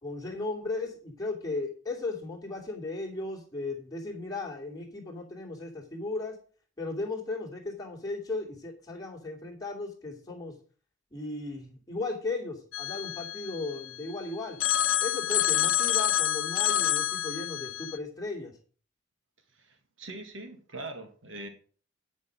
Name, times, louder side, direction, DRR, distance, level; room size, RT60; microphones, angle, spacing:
voice 1, 0.0-6.4 6.8-10.5 11.1-14.6 15.0-18.6, left 3 dB, 20° left, -3 dB, 2.7 m, -36 dB
Telephone, 12.7-14.1 14.6-18.0, left 12 dB, 85° left, 0.6 m, -28 dB
voice 2, 19.5-21.5, right 2 dB, 75° right, 6 dB, 1.9 m, -42 dB
10.0 x 5.4 x 6.2 m, 0.42 s
head